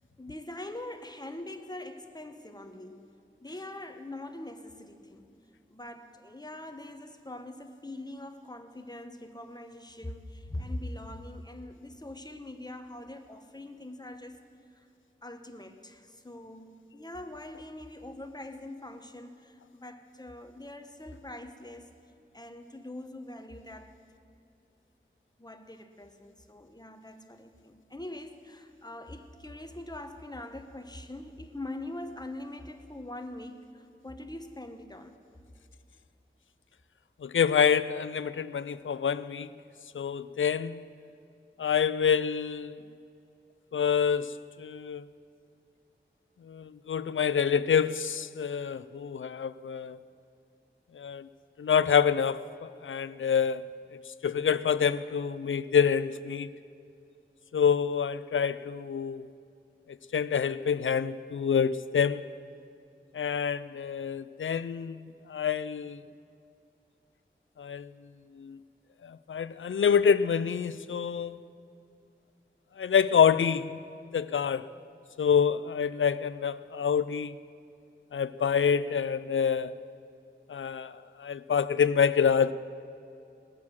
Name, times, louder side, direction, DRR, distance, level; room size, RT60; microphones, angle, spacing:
voice 1, 0.2-3.2 3.4-5.3 5.7-14.4 14.7-14.9 15.2-21.9 22.3-23.9 25.4-35.2, left 1 dB, 20° left, 1.1 m, -43 dB
voice 2, 37.2-39.5 39.9-40.8 41.6-42.8 43.7-45.1 46.4-50.0 50.9-51.3 51.6-52.5 52.8-53.7 54.2-56.5 57.5-59.3 59.9-62.3 63.1-66.0 67.6-67.9 68.4-68.6 69.0-71.4 72.8-73.8 74.1-74.7 75.2-77.3 78.1-79.8 80.5-82.5, left 7 dB, 80° left, 0.4 m, -27 dB
19.5 x 7.2 x 6.3 m
wide cardioid pair, 40°, 20 cm